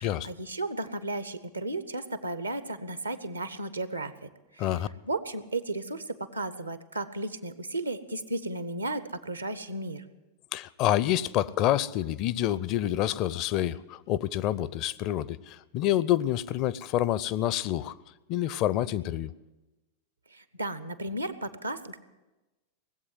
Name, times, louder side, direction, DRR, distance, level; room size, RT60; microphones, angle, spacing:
voice 1, 0.0-4.7 5.0-10.0 20.3-22.0, right 2 dB, 85° right, 13 dB, 0.9 m, -34 dB
voice 2, 10.5-17.9 18.3-19.3, left 13 dB, 40° left, 19 dB, 0.5 m, -27 dB
18.5 x 8.0 x 9.4 m, 1.1 s
figure-of-eight pair, 90°, 0 cm